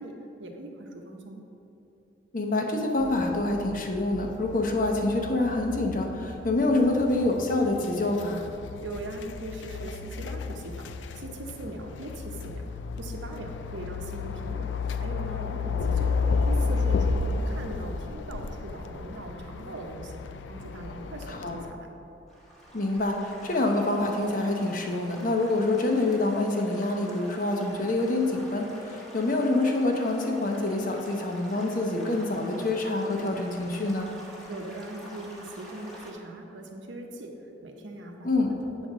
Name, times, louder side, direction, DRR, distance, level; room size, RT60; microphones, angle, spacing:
voice 1, 0.0-1.4 8.8-10.9 11.1-12.7 13.0-14.7 15.0-16.2 16.5-20.2 20.5-21.9 34.5-38.9, right 1 dB, 85° right, 3 dB, 0.9 m, -40 dB
voice 2, 2.3-8.4 21.3-21.6 22.7-34.1 38.2-38.5, left 2 dB, 45° left, 2 dB, 0.8 m, -26 dB
sound 1, 3.0-21.7, left 4 dB, 80° left, 0.4 m, -32 dB
Stream / Gurgling / Trickle dribble, 22.3-36.1, right 1 dB, ahead, 1.1 m, -47 dB
8.1 x 4.2 x 6.1 m, 2.8 s
head